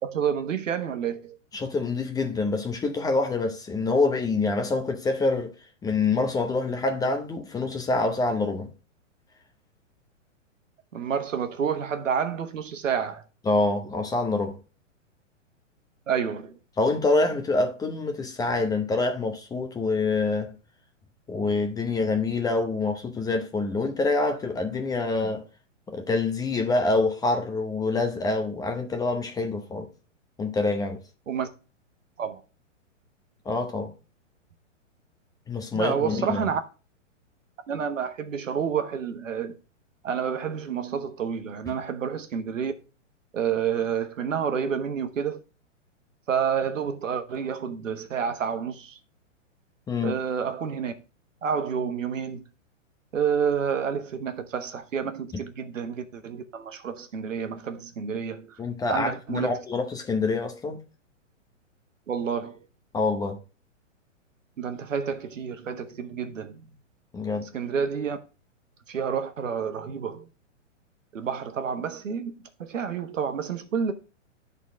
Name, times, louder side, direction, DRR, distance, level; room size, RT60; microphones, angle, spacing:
voice 1, 0.0-1.4 10.9-13.2 16.1-16.6 31.3-31.5 32.2-32.4 35.7-36.6 37.7-39.6 40.0-42.7 43.3-45.4 46.3-49.0 50.0-50.9 51.4-52.5 53.1-58.6 58.9-59.6 62.1-62.7 64.6-66.6 67.5-68.2 68.9-70.3 71.1-72.3 72.6-73.9, right 7 dB, 80° right, 1.2 m, -29 dB
voice 2, 1.5-5.5 5.8-8.7 13.5-14.6 16.8-20.6 21.3-25.4 25.9-29.9 30.4-31.0 33.4-33.9 35.5-36.4 49.9-50.2 58.6-60.8 62.9-63.4 67.1-67.5, left 3 dB, 10° left, 0.7 m, -26 dB
11.0 x 4.1 x 3.6 m
hypercardioid pair, 130°, 38 cm